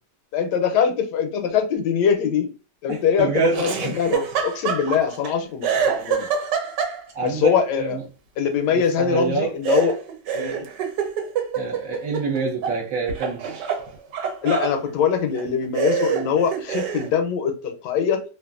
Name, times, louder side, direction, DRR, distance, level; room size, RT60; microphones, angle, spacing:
voice 1, 0.3-2.5 2.8-6.3 7.2-8.0 8.4-9.9 10.3-10.7 14.4-18.2, left 7 dB, 80° left, 1.2 m, -22 dB
voice 2, 2.9-4.0 7.1-8.0 9.0-9.6 11.5-13.5, right 5 dB, 55° right, 1.2 m, -26 dB
Laughter, 3.5-5.3 5.6-7.3 9.6-12.8 13.1-14.8 15.4-15.5 15.8-17.1, right 7 dB, 80° right, 1.3 m, -26 dB
2.9 x 2.4 x 2.3 m
omnidirectional pair, 1.9 m